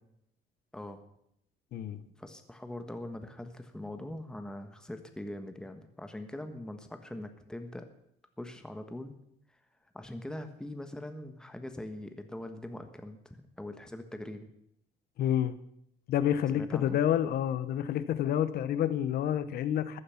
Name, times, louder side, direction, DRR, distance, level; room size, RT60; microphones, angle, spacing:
voice 1, 2.2-7.9 8.4-9.2 9.9-14.5 16.5-17.0, left 1 dB, 5° left, 7 dB, 1.3 m, -42 dB
voice 2, 15.2-15.5 16.1-20.0, left 10 dB, 65° left, 13 dB, 1.0 m, -29 dB
14.5 x 9.9 x 5.8 m, 0.76 s
cardioid pair, 110°, 17 cm